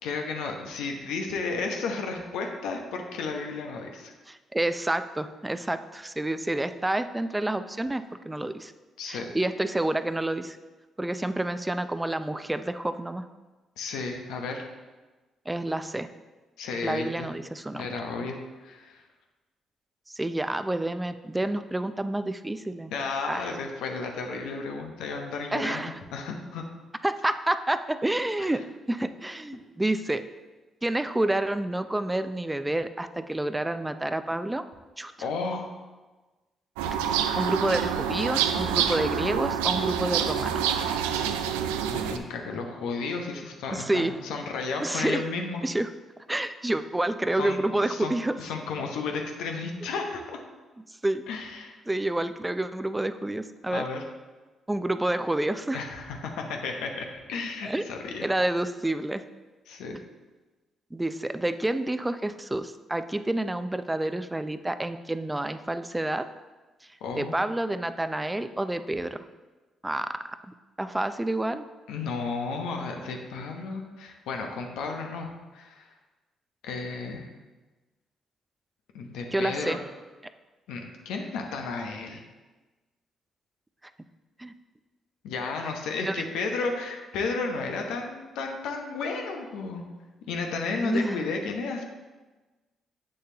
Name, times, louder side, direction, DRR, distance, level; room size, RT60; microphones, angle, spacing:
voice 1, 0.0-4.1 9.0-9.3 13.8-14.7 16.6-17.3 17.7-18.3 18.6-19.0 22.9-25.9 26.1-26.6 28.4-28.5 35.2-35.7 41.1-41.3 41.9-45.6 47.4-50.4 51.3-51.8 53.7-54.0 55.7-58.2 59.7-60.0 67.0-67.4 71.9-75.9 76.6-77.3 78.9-79.8 80.7-82.2 85.2-89.8 90.3-91.8, left 4 dB, 80° left, 2 dB, 0.9 m, -33 dB
voice 2, 4.3-8.7 9.1-10.6 11.0-13.2 15.5-16.1 16.8-17.9 20.1-22.9 23.3-23.5 25.5-26.0 27.0-28.6 28.9-30.2 30.8-34.6 35.0-35.1 37.1-40.9 43.7-44.1 44.8-45.2 45.6-45.9 46.3-48.4 51.0-51.2 51.9-53.9 54.7-55.8 57.6-57.9 58.2-59.2 59.9-60.0 60.9-66.3 67.2-69.2 69.8-70.2 70.8-71.7 79.3-79.8 84.4-84.5 86.0-86.1 90.8-91.2, right 1 dB, 15° right, 11 dB, 0.5 m, -29 dB
sound 1, 36.8-42.2, right 8 dB, 90° right, 0.4 m, -27 dB
7.8 x 6.6 x 2.9 m, 1.2 s
hypercardioid pair, 50°, 0 cm